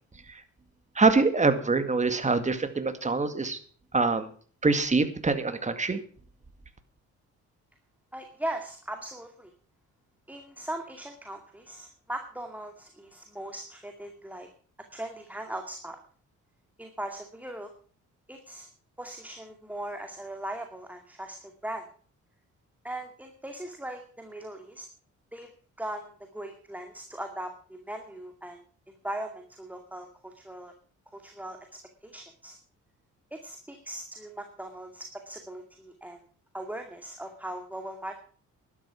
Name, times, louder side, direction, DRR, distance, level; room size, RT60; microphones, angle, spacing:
voice 1, 1.0-3.6 3.9-4.3 4.6-6.0, right 3 dB, 25° right, 9 dB, 2.1 m, -24 dB
voice 2, 8.1-9.5 10.3-14.5 14.9-16.0 16.8-17.7 18.3-18.7 19.0-21.8 22.8-24.9 25.3-25.5 25.8-28.6 29.0-30.7 31.1-31.6 32.0-32.6 33.3-36.2 36.5-38.2, right 1 dB, 5° right, 4 dB, 2.2 m, -39 dB
12.5 x 12.0 x 5.9 m, 0.43 s
cardioid pair, 90°, 30 cm